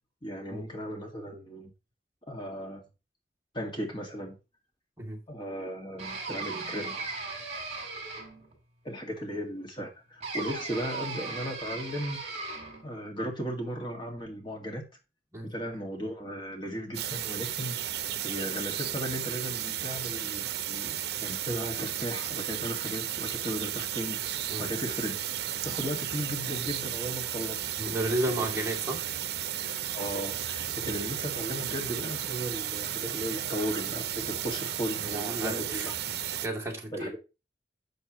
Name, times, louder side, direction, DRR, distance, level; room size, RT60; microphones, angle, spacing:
voice 1, 0.2-1.7 2.3-2.8 3.5-4.4 5.3-7.1 8.8-12.2 12.8-14.9 15.4-17.9 18.2-25.2 25.6-27.6 28.3-28.6 29.9-35.9 36.9-37.2, equal, 25° left, 1.9 m, -36 dB
sound 1, 6.0-8.5 10.2-12.8, right 3 dB, 40° right, 5.0 m, -37 dB
sound 2, 16.9-36.5, right 11 dB, 65° right, 0.7 m, -34 dB
voice 2, 27.8-29.0 30.8-30.9 35.1-35.9 36.4-37.1, right 1 dB, 15° right, 2.6 m, -32 dB
11.5 x 7.7 x 3.0 m
head